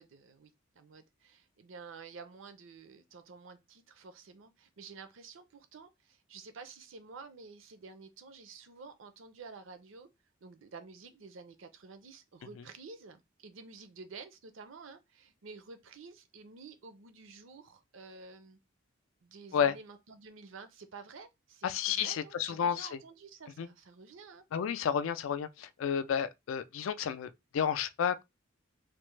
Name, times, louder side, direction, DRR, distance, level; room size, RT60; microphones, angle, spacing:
voice 1, 0.0-10.1 10.4-18.6 19.2-24.4, right 4 dB, 70° right, 0.5 m, -50 dB
voice 2, 21.6-23.0 23.6-23.7 24.5-28.2, left 8 dB, 75° left, 0.3 m, -31 dB
3.3 x 2.1 x 3.1 m
head